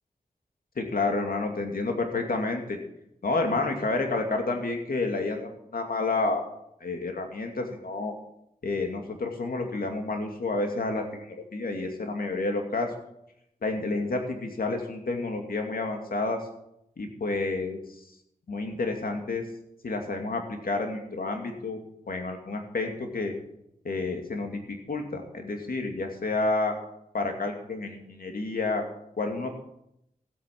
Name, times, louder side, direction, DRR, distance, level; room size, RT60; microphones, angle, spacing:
voice 1, 0.8-2.8 3.2-6.5 6.8-8.1 8.6-12.9 13.6-16.4 17.0-17.8 18.5-19.4 19.8-21.8 22.1-23.3 23.8-24.6 24.9-26.7 27.1-28.8 29.2-29.5, left 3 dB, 75° left, 3 dB, 2.5 m, -29 dB
15.0 x 8.7 x 6.0 m, 0.79 s
cardioid pair, 50°, 15 cm